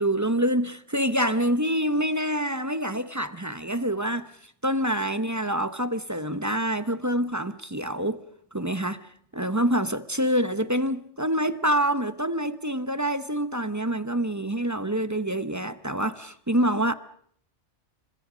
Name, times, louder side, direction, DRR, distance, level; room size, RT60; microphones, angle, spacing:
voice 1, 0.0-4.3 4.6-8.2 8.5-9.1 9.3-16.9, right 1 dB, 15° right, 0.8 m, -26 dB
29.5 x 26.0 x 5.1 m
omnidirectional pair, 1.3 m